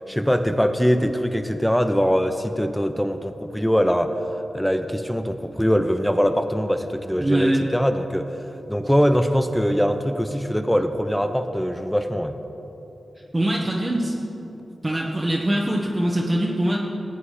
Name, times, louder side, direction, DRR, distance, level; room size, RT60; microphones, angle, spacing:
voice 1, 0.1-4.1 4.5-8.4 8.7-12.4, equal, 5° left, 8 dB, 0.8 m, -22 dB
voice 2, 7.2-7.6 13.3-14.1 14.8-16.8, right 1 dB, 25° right, -3 dB, 1.3 m, -22 dB
15.0 x 8.2 x 5.0 m, 3.0 s
cardioid pair, 45°, 0 cm